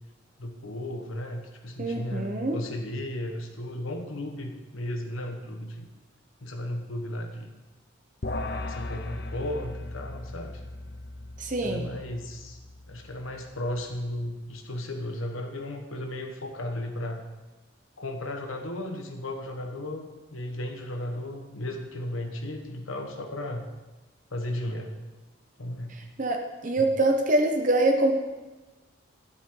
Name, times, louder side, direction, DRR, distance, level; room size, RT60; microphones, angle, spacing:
voice 1, 0.4-5.9 6.4-7.5 8.7-10.6 11.6-12.6 12.9-17.2 18.0-23.7 24.3-25.0 25.6-26.0 26.8-26.9, left 1 dB, 85° left, 4 dB, 1.3 m, -35 dB
voice 2, 1.8-2.6 11.4-11.8 26.2-28.1, right 2 dB, 40° right, 3 dB, 0.9 m, -24 dB
sound 1, 8.2-13.7, left 2 dB, 55° left, 0.7 m, -38 dB
13.0 x 8.1 x 3.9 m, 1.2 s
head